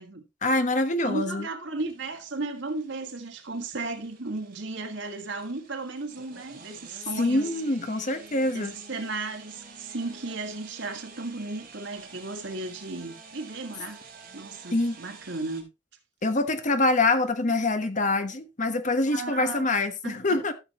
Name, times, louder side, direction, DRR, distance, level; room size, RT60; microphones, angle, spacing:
voice 1, 0.4-1.5 7.2-8.7 14.7-15.0 16.2-20.5, left 2 dB, 45° left, 1.2 m, -25 dB
voice 2, 1.0-7.5 8.5-14.0 14.3-15.7 19.1-19.7 20.0-20.4, right 3 dB, 80° right, 2.0 m, -35 dB
sound 1, 1.8-15.6, right 4 dB, 50° right, 3.3 m, -49 dB
13.5 x 7.1 x 3.1 m
head